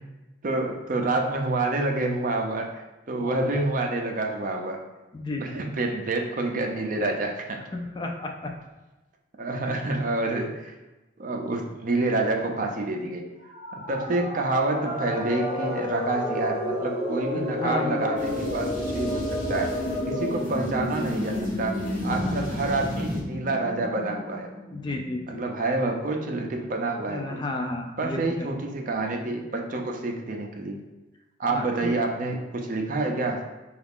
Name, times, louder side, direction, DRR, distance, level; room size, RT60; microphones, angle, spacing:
voice 1, 0.4-4.8 5.4-7.6 9.4-10.7 11.2-13.3 13.7-19.7 20.1-24.5 25.3-27.4 28.0-30.8 31.4-33.5, right 2 dB, 45° right, 2 dB, 0.5 m, -28 dB
voice 2, 5.1-5.5 7.7-8.5 14.1-14.2 17.5-18.1 22.0-22.4 24.7-25.5 27.1-28.5 31.5-32.0, left 2 dB, 25° left, 2 dB, 0.4 m, -32 dB
sound 1, 13.4-25.2, equal, 30° right, 1.1 m, -33 dB
sound 2, 14.8-20.4, left 2 dB, 10° right, 0.9 m, -32 dB
sound 3, 18.2-23.2, equal, 45° left, 0.9 m, -38 dB
4.6 x 2.4 x 3.5 m, 1.1 s
head